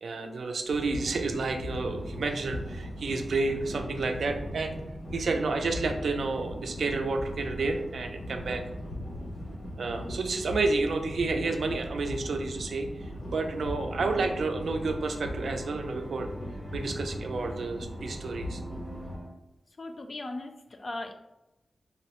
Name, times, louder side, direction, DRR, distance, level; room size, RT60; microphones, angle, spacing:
voice 1, 0.0-4.8 5.1-8.6 9.8-16.3 16.7-18.6, right 3 dB, 80° right, 4 dB, 0.4 m, -30 dB
sound 1, 0.7-19.2, equal, 70° left, 0.8 m, -39 dB
sound 2, 0.9-15.4, equal, 90° left, 1.2 m, -48 dB
sound 3, 13.5-19.3, equal, 25° right, 0.6 m, -44 dB
voice 2, 19.8-21.1, left 2 dB, 35° left, 5 dB, 0.3 m, -38 dB
3.8 x 2.0 x 2.9 m, 0.89 s
wide cardioid pair, 165°, 0 cm